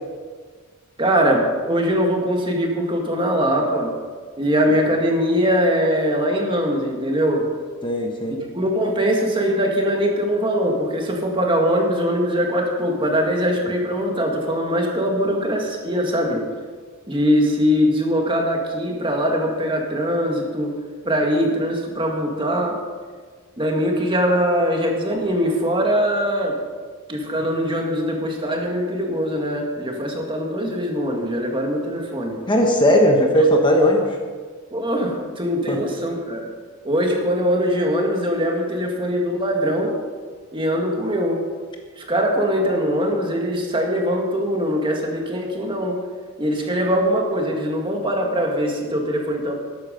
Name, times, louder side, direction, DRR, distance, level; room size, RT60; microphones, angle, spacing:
voice 1, 1.0-3.9 4.4-7.5 8.5-16.4 17.1-20.7 21.0-22.7 23.6-26.6 27.1-32.4 34.7-36.5 36.8-40.0 40.5-41.4 42.0-46.0 46.4-49.6, equal, 25° right, 1 dB, 1.9 m, -22 dB
voice 2, 7.8-8.4 32.5-34.2 35.7-35.8, equal, 20° left, 2 dB, 1.2 m, -17 dB
13.0 x 11.5 x 5.3 m, 1.5 s
head